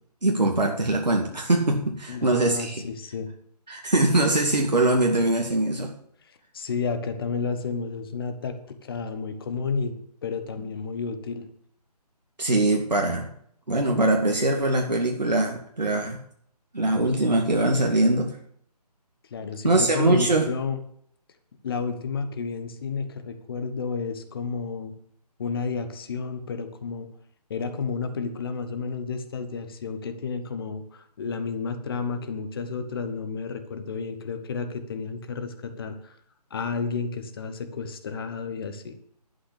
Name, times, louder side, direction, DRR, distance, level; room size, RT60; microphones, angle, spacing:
voice 1, 0.2-2.8 3.7-5.9 12.4-13.3 13.7-16.2 16.7-18.3 19.6-20.4, right 2 dB, 90° right, 1 dB, 2.1 m, -22 dB
voice 2, 2.1-3.3 6.5-10.0 10.2-11.4 19.3-20.8 21.6-24.9 25.4-27.1 27.5-36.1 36.5-38.9, left 5 dB, 35° left, 9 dB, 1.4 m, -31 dB
11.5 x 5.9 x 8.4 m, 0.65 s
figure-of-eight pair, 150°, 21 cm